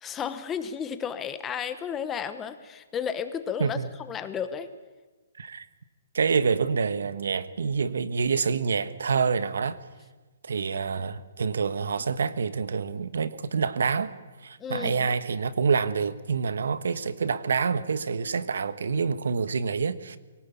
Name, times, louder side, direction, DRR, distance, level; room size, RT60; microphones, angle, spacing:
voice 1, 0.0-4.7 14.6-15.1, left 7 dB, 10° left, 1.0 m, -33 dB
voice 2, 6.1-9.8 10.4-14.1 14.4-20.2, right 5 dB, 80° right, 1.3 m, -27 dB
23.5 x 17.5 x 8.5 m
hypercardioid pair, 165°, 0 cm